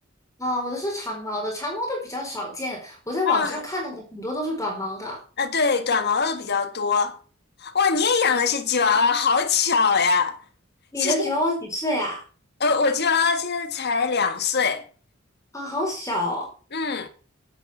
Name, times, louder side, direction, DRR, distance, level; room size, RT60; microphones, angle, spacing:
voice 1, 0.4-5.2 10.9-12.2 15.5-16.5, left 1 dB, 15° left, 4.5 m, -28 dB
voice 2, 3.2-3.6 5.4-7.2 7.6-10.4 11.0-11.3 12.6-14.8 16.7-17.1, left 5 dB, 55° left, 1.7 m, -22 dB
10.5 x 9.4 x 6.3 m
head